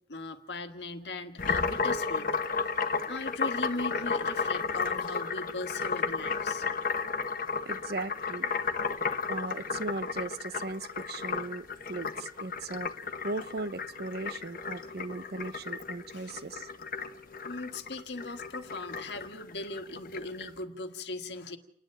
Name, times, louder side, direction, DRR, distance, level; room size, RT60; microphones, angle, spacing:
voice 1, 0.1-2.3 2.6-2.7 3.1-6.7 16.0-16.5 17.4-21.6, left 2 dB, 75° left, 1.6 m, -39 dB
sound 1, 1.4-20.5, left 5 dB, 50° left, 1.1 m, -33 dB
voice 2, 7.7-8.5 9.3-12.9 13.2-16.7, right 3 dB, 60° right, 0.8 m, -38 dB
28.5 x 10.5 x 8.8 m
head